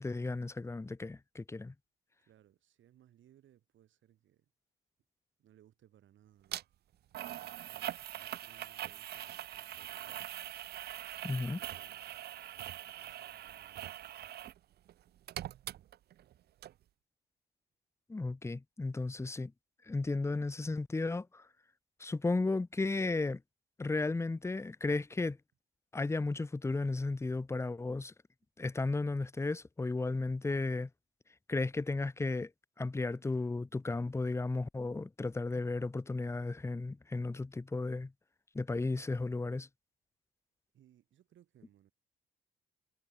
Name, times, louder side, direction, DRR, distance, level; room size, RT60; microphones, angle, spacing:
voice 1, 0.0-1.7 11.2-11.6 18.1-19.5 19.9-21.5 22.0-23.4 23.8-25.4 25.9-28.1 28.6-30.9 31.5-32.5 32.8-38.1 38.5-39.7, left 3 dB, 15° left, 0.7 m, -34 dB
voice 2, 2.2-4.5 5.4-6.8 7.2-10.2 11.3-12.1 12.5-14.1 40.7-41.9, right 11 dB, 75° right, 6.9 m, -65 dB
sound 1, 6.5-6.6 7.1-14.6 14.9-16.3 16.6-16.7, right 12 dB, 55° right, 0.4 m, -43 dB
cardioid pair, 90°, 20 cm